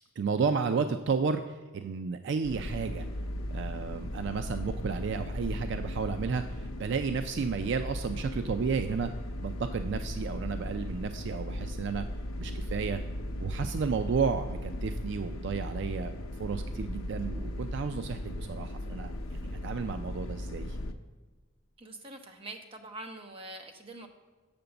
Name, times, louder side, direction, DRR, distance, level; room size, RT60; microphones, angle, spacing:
voice 1, 0.2-3.0 3.5-9.1 9.4-12.0 12.4-13.0 13.4-16.1 16.4-20.8, right 5 dB, 60° right, 8 dB, 0.4 m, -32 dB
sound 1, 2.4-20.9, left 1 dB, 85° left, 0.6 m, -37 dB
voice 2, 21.8-24.1, right 2 dB, 25° right, 4 dB, 0.8 m, -44 dB
6.7 x 5.2 x 6.9 m, 1.3 s
head